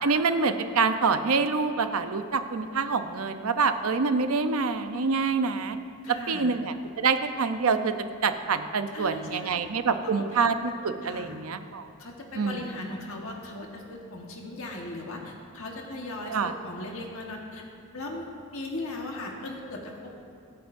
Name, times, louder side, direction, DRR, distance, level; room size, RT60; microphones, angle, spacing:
voice 1, 0.0-5.8 6.3-7.9 8.2-10.5 10.8-11.8 12.3-12.6 16.3-16.5, right 4 dB, 75° right, 9 dB, 0.7 m, -26 dB
voice 2, 6.0-6.5 8.9-9.6 10.0-10.2 11.0-11.4 12.0-17.6 17.9-20.2, left 2 dB, 70° left, 0 dB, 1.4 m, -38 dB
24.0 x 9.2 x 2.6 m, 2.5 s
head